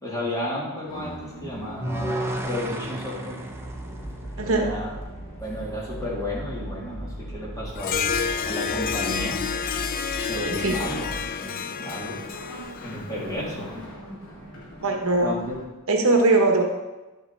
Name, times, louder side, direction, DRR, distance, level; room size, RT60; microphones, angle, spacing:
voice 1, 0.0-3.4 4.3-4.9 5.4-9.5 10.1-12.2 12.8-13.7 15.2-15.6, left 1 dB, 15° left, -6 dB, 3.1 m, -33 dB
sound 1, 0.9-15.6, equal, 65° left, 2.8 m, -39 dB
sound 2, 1.8-5.0, right 1 dB, 10° right, 0.8 m, -33 dB
voice 2, 4.4-4.7 10.4-10.8 14.8-15.3 15.9-16.6, right 2 dB, 65° right, 3 dB, 1.2 m, -20 dB
Harp, 7.8-13.5, left 6 dB, 40° left, 0.4 m, -29 dB
10.5 x 7.6 x 4.5 m, 1.1 s
head